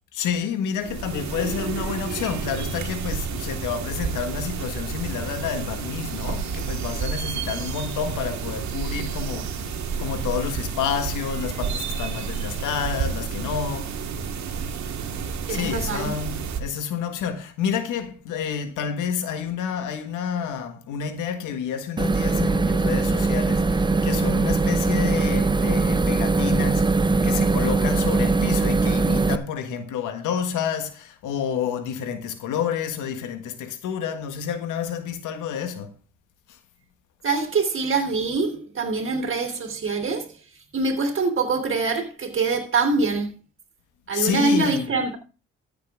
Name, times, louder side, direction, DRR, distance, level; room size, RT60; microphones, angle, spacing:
voice 1, 0.1-14.0 15.5-35.9 36.5-36.6 44.1-44.9, left 7 dB, 90° left, 1.6 m, -29 dB
sound 1, 0.8-16.6, right 6 dB, 65° right, 1.9 m, -30 dB
voice 2, 15.5-16.1 37.2-40.4 40.7-43.4 44.1-45.2, right 3 dB, 45° right, 3.2 m, -24 dB
sound 2, 22.0-29.4, right 3 dB, 15° right, 0.7 m, -21 dB
13.5 x 7.9 x 3.6 m
cardioid pair, 90°, 30 cm